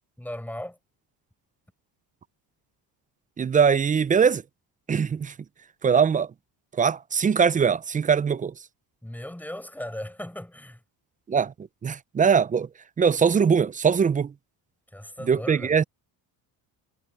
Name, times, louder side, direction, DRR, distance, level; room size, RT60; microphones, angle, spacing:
voice 1, 0.2-0.8 9.0-10.8 14.9-15.7, left 1 dB, 5° left, 4.7 m, -37 dB
voice 2, 3.4-4.4 4.9-5.3 5.8-6.3 6.8-8.5 11.3-11.5 11.8-12.7 13.0-14.3 15.3-15.8, right 6 dB, 20° right, 0.4 m, -21 dB
cardioid pair, 110°, 41 cm